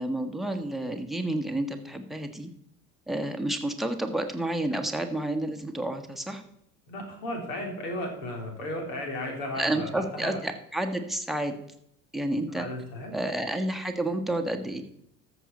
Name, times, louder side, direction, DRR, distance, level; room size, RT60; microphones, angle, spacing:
voice 1, 0.0-2.5 3.1-6.4 9.6-11.5 12.1-12.7 13.1-14.8, right 1 dB, ahead, 8 dB, 1.4 m, -30 dB
voice 2, 6.9-10.4 12.5-13.1, left 1 dB, 60° left, 2 dB, 3.1 m, -34 dB
13.5 x 6.9 x 4.2 m, 0.73 s
figure-of-eight pair, 65°, 46 cm